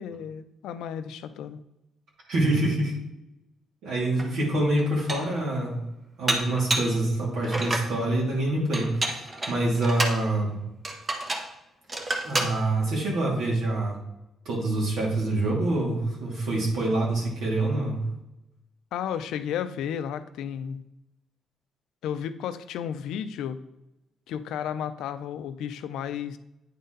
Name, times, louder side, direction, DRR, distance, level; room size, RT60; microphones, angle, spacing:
voice 1, 0.0-1.6 18.9-20.8 22.0-23.6 24.3-26.4, left 9 dB, 85° left, 11 dB, 0.4 m, -33 dB
voice 2, 2.3-2.9 3.8-5.8 6.2-10.5 12.2-14.0 14.4-18.0, right 2 dB, 80° right, -3 dB, 2.5 m, -26 dB
Dishes pots and pans, 4.2-4.3 4.8-5.4 6.3-7.0 7.4-7.9 8.7-10.2 10.8-11.5 11.9-12.6, right 2 dB, 30° right, 1.0 m, -29 dB
9.1 x 4.1 x 3.9 m, 0.90 s
cardioid pair, 90°, 0 cm